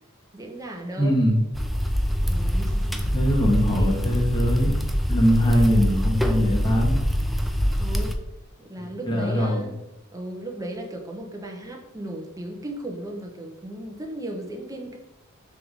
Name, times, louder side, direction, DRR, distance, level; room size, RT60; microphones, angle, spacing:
voice 1, 0.3-1.2 2.2-3.1 3.8-3.9 5.6-5.9 7.8-8.1 8.6-9.8 10.1-15.0, right 1 dB, 15° right, 1 dB, 0.9 m, -36 dB
voice 2, 1.0-1.4 3.1-4.7 5.1-7.0 9.1-9.6, equal, 20° left, -2 dB, 1.4 m, -21 dB
sound 1, 1.5-8.1, equal, ahead, 0.4 m, -24 dB
6.1 x 3.5 x 4.7 m, 0.89 s
head